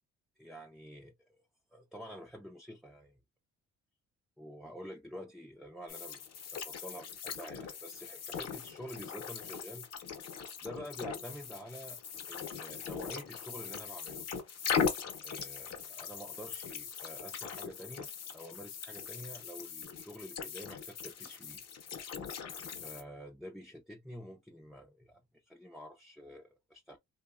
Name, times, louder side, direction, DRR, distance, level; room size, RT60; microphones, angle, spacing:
voice 1, 0.4-1.4 1.7-3.2 4.4-6.2 6.5-9.9 10.6-12.0 12.3-14.3 15.2-21.6 22.7-27.0, equal, ahead, 0.4 m, -48 dB
sound 1, 5.9-23.0, left 6 dB, 55° left, 0.8 m, -40 dB
2.7 x 2.2 x 2.3 m
cardioid pair, 90°, 30 cm